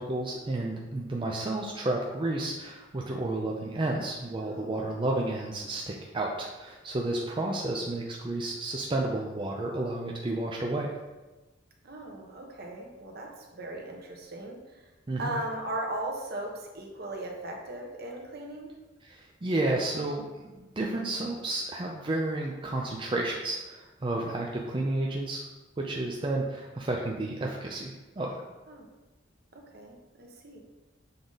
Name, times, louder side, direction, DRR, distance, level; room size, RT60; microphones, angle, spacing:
voice 1, 0.0-10.9 15.1-15.4 19.0-25.4 25.8-28.4, right 2 dB, 25° right, -1 dB, 0.5 m, -31 dB
voice 2, 4.4-4.9 7.2-7.3 11.8-14.9 15.2-18.7 24.2-24.4 28.7-28.9 29.5-30.6, right 1 dB, 55° right, 1 dB, 1.1 m, -38 dB
6.9 x 3.8 x 3.9 m, 1.1 s
head